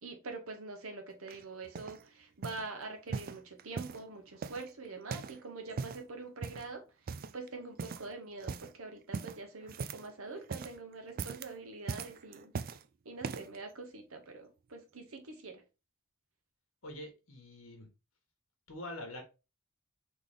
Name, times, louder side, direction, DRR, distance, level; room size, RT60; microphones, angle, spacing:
voice 1, 0.0-6.8 7.3-12.5 13.0-15.6, right 3 dB, 85° right, 1.2 m, -45 dB
sound 1, 1.3-2.0 2.4-2.7 3.1-4.0 4.4-5.4 5.7-6.1 6.4-6.7 7.1-7.5 7.8-8.1 8.4-8.7 9.1-10.1 10.4-10.8 11.1-11.5 11.9-12.8 13.2-13.6 14.2-14.3, right 5 dB, 45° right, 0.3 m, -40 dB
voice 2, 16.8-17.9 18.7-19.2, left 1 dB, 80° left, 1.4 m, -44 dB
4.0 x 3.2 x 3.4 m
head